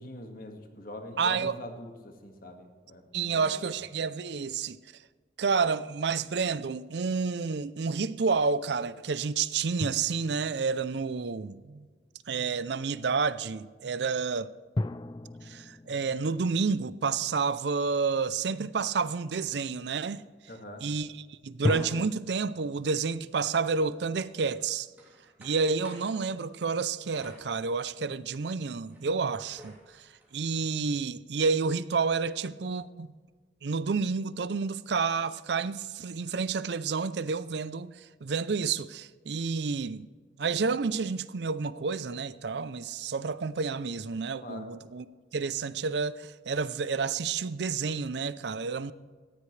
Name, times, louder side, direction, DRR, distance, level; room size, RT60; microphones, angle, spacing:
voice 1, 0.0-3.8 20.5-20.9 44.4-44.7, left 1 dB, 50° left, 1.9 m, -44 dB
voice 2, 1.2-1.5 3.1-4.8 5.4-11.9 12.3-14.5 15.4-20.2 20.8-24.9 25.4-29.8 30.3-33.1 33.6-37.9 38.2-40.1 40.4-45.1 45.3-48.9, right 5 dB, 70° right, 0.5 m, -30 dB
sound 1, 9.8-11.8 14.8-18.0 21.6-22.1, left 2 dB, 25° left, 0.3 m, -36 dB
sound 2, 24.5-26.2 27.2-28.2 28.7-30.4, right 1 dB, 10° right, 3.3 m, -55 dB
18.0 x 15.0 x 3.3 m
head